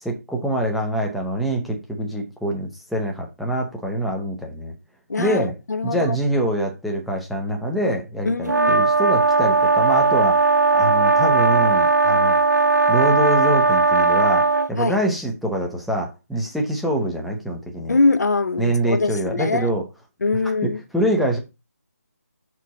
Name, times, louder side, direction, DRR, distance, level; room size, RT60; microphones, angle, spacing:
voice 1, 0.0-4.7 5.2-5.5 5.8-10.4 10.7-12.4 12.9-14.4 14.7-18.0 18.6-19.8 20.6-21.4, right 1 dB, ahead, 0.4 m, -24 dB
voice 2, 5.1-6.2 8.3-8.8 14.8-15.0 17.9-19.7 20.2-20.8, left 3 dB, 75° left, 0.6 m, -23 dB
sound 1, 8.5-14.7, right 3 dB, 85° right, 0.6 m, -17 dB
5.9 x 4.6 x 4.0 m
figure-of-eight pair, 165°, 9 cm